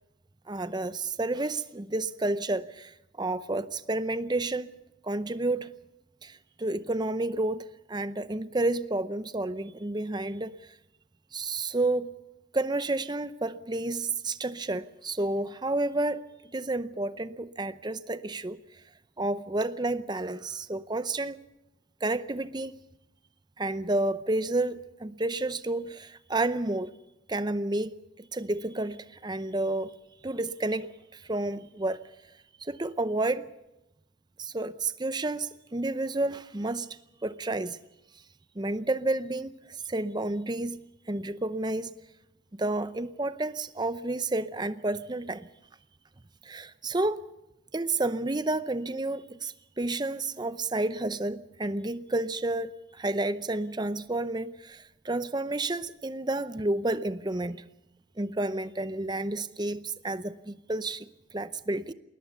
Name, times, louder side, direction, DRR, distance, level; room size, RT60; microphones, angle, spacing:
voice 1, 0.5-4.7 5.0-5.7 6.2-10.6 11.3-12.1 12.5-16.2 16.5-18.6 19.2-21.4 22.0-22.7 23.6-26.9 27.3-29.9 30.2-32.0 32.6-33.5 34.4-37.0 37.2-37.8 38.6-40.8 41.1-41.9 42.6-45.5 46.4-47.3 47.7-57.7 58.2-61.1 61.3-61.9, right 2 dB, 20° right, 0.7 m, -30 dB
21.0 x 19.5 x 6.8 m
head